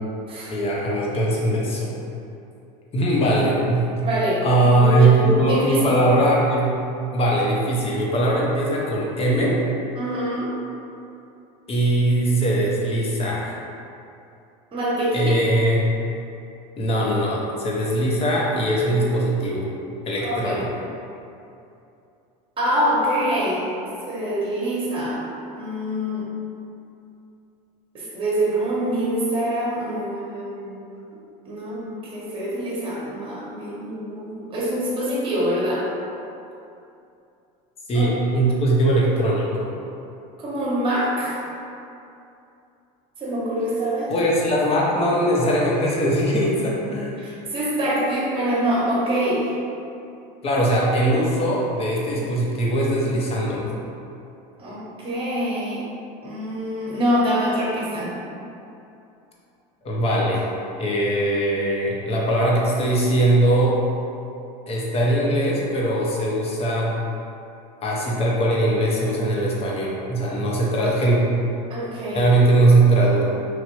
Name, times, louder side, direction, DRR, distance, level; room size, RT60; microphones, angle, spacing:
voice 1, 0.5-1.9 2.9-3.9 4.4-6.8 7.1-9.6 11.7-13.5 15.1-15.9 16.8-19.7 20.1-20.7 37.9-39.7 44.1-47.2 50.4-53.8 59.8-60.4 60.8-63.8 64.7-67.0 67.8-71.2 72.1-73.5, right 1 dB, 30° left, -4 dB, 0.7 m, -20 dB
voice 2, 4.0-4.4 4.7-6.0 9.9-10.5 14.7-15.3 20.2-20.6 22.6-23.6 24.1-25.2 25.5-26.2 27.9-30.7 31.4-35.9 37.9-38.1 40.4-41.4 43.2-44.1 47.2-49.5 54.6-55.8 56.2-58.1 71.7-72.3, equal, 25° right, -6 dB, 1.0 m, -25 dB
3.1 x 2.5 x 2.9 m, 2.7 s
supercardioid pair, 120°, 20 cm